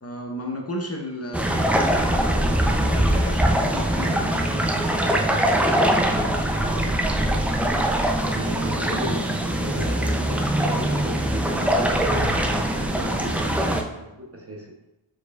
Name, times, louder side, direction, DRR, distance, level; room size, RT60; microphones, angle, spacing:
voice 1, 0.0-4.8, equal, 30° left, 1 dB, 0.7 m, -34 dB
sound 1, 1.3-13.8, right 1 dB, 5° right, 0.3 m, -22 dB
voice 2, 6.5-14.7, right 1 dB, 30° right, 1 dB, 0.7 m, -36 dB
4.8 x 4.3 x 2.3 m, 0.95 s
wide cardioid pair, 65°, 49 cm